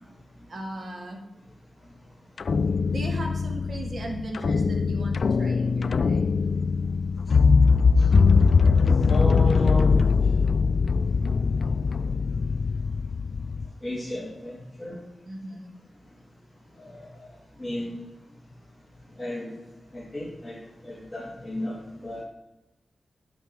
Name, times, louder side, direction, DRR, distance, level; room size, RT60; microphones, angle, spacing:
voice 1, 0.5-1.2 2.9-6.3 15.2-15.7, right 1 dB, 60° right, 1 dB, 2.2 m, -37 dB
sound 1, 2.4-13.7, left 5 dB, 70° left, 0.3 m, -22 dB
voice 2, 9.1-9.9 13.8-15.0 16.8-17.3 17.6-18.1 19.2-19.5 19.9-21.8 22.0-22.2, left 1 dB, 5° left, -6 dB, 3.1 m, -33 dB
10.5 x 8.4 x 4.8 m, 0.95 s
wide cardioid pair, 80°, 0 cm